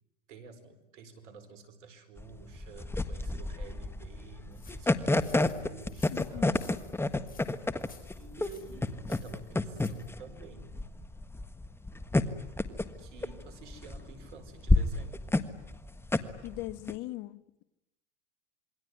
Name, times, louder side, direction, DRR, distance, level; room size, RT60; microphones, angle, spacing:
voice 1, 0.3-6.7 8.2-10.8 12.7-15.2, right 5 dB, 80° right, 9 dB, 4.9 m, -50 dB
sound 1, 2.2-16.9, left 2 dB, 5° left, 1.5 m, -30 dB
sound 2, 4.5-10.1, left 6 dB, 25° left, 4.5 m, -57 dB
voice 2, 6.1-6.7 16.4-17.6, left 17 dB, 55° left, 15 dB, 1.4 m, -40 dB
27.5 x 23.0 x 9.5 m, 0.89 s
hypercardioid pair, 110°, 36 cm